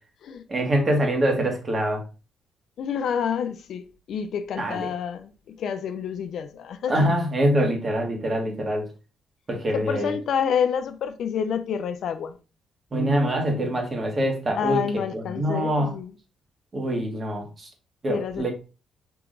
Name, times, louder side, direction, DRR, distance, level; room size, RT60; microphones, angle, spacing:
voice 1, 0.5-2.0 4.6-4.9 6.9-8.9 9.5-10.1 12.9-14.8 15.1-15.9 16.7-17.7 18.0-18.5, right 1 dB, 35° right, 1.6 m, -24 dB
voice 2, 2.8-7.1 9.7-12.3 14.5-16.1 18.1-18.5, left 7 dB, 70° left, 0.5 m, -28 dB
4.7 x 2.9 x 3.7 m
cardioid pair, 90°, 0 cm